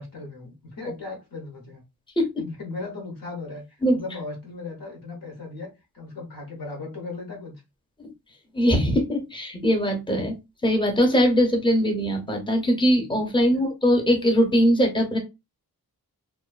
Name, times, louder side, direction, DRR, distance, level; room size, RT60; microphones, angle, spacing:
voice 1, 0.0-1.8 2.4-7.6 13.5-13.6 15.1-15.2, left 3 dB, 65° left, 0 dB, 1.0 m, -37 dB
voice 2, 8.5-10.4 10.6-15.2, equal, 15° left, 2 dB, 0.7 m, -21 dB
2.5 x 2.2 x 2.3 m, 0.24 s
wide cardioid pair, 85°, 38 cm